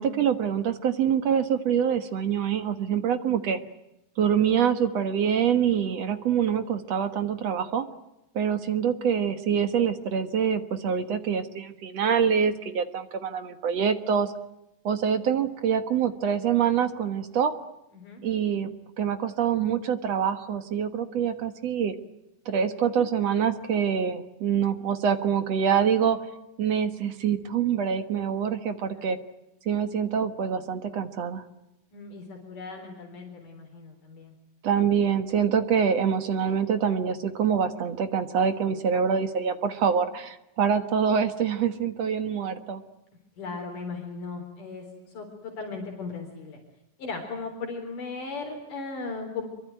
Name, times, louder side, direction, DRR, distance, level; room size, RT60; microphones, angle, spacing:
voice 1, 0.0-3.6 4.2-7.8 8.3-14.3 14.8-17.5 18.2-18.7 19.0-21.9 22.5-26.2 26.6-29.2 29.7-31.4 34.6-42.8, right 7 dB, 55° right, 9 dB, 2.2 m, -25 dB
voice 2, 31.9-34.3 43.4-44.9 45.1-46.6 47.0-49.5, left 4 dB, 65° left, 2 dB, 5.4 m, -37 dB
26.5 x 24.0 x 9.3 m, 0.90 s
omnidirectional pair, 4.1 m